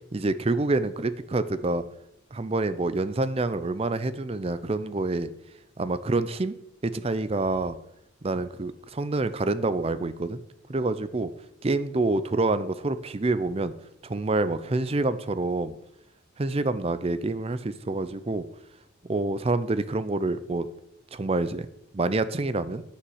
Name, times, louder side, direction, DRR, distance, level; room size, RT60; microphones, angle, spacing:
voice 1, 0.1-1.8 2.3-5.3 5.8-6.6 6.8-7.8 8.2-10.4 10.7-11.3 11.6-13.7 14.0-15.7 16.4-18.5 19.1-20.7 21.1-21.7 21.9-22.8, right 2 dB, 30° right, 13 dB, 0.5 m, -27 dB
9.8 x 5.7 x 7.9 m, 0.79 s
head